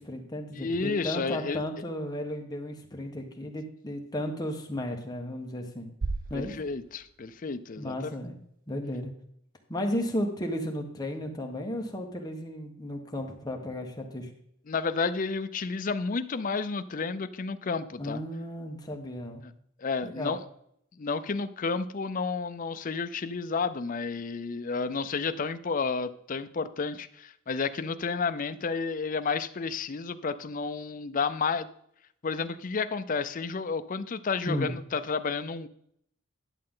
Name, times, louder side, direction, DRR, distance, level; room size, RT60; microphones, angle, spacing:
voice 1, 0.0-5.9 6.3-6.5 7.8-8.3 8.7-9.1 9.7-14.3 18.0-19.4 20.0-20.4 34.4-34.7, left 1 dB, 20° left, 2 dB, 1.3 m, -34 dB
voice 2, 0.5-1.6 6.3-8.1 14.7-18.2 19.8-20.4 21.0-31.7 32.2-35.7, left 4 dB, 40° left, 11 dB, 0.5 m, -31 dB
sound 1, 6.0-8.1, right 3 dB, 40° right, 0.4 m, -37 dB
11.0 x 7.5 x 3.8 m, 0.70 s
head